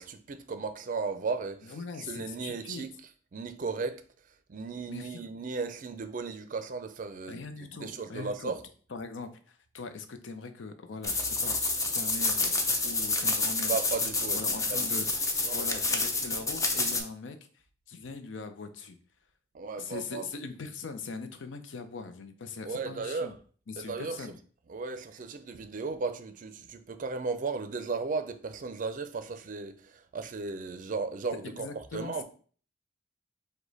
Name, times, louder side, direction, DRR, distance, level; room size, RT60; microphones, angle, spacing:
voice 1, 0.0-2.9 3.3-4.0 4.5-8.6 13.7-14.9 15.4-15.8 19.5-20.3 22.6-23.3 23.8-24.3 24.7-32.2, right 4 dB, 45° right, 0.4 m, -35 dB
voice 2, 1.7-2.8 4.9-5.2 7.3-8.5 8.9-12.5 12.8-13.7 14.3-15.0 15.5-17.4 17.9-19.0 19.8-23.3 23.7-24.4 31.4-32.2, left 4 dB, 85° left, 0.6 m, -41 dB
sound 1, 11.0-17.0, left 3 dB, 20° left, 0.5 m, -28 dB
4.9 x 2.2 x 3.9 m
head